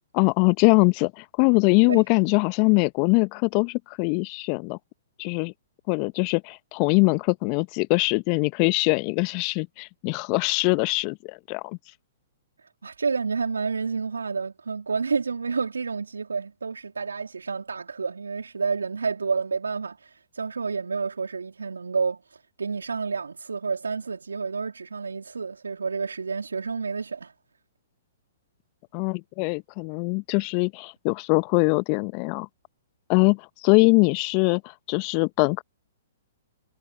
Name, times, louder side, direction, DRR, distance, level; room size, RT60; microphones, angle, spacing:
voice 1, 0.1-4.8 5.2-5.5 5.9-11.8 28.9-32.5 33.1-35.6, left 35 dB, 35° left, 1.0 m, -22 dB
voice 2, 12.6-27.3, right 5 dB, 75° right, 2.9 m, -29 dB
figure-of-eight pair, 115°, 0 cm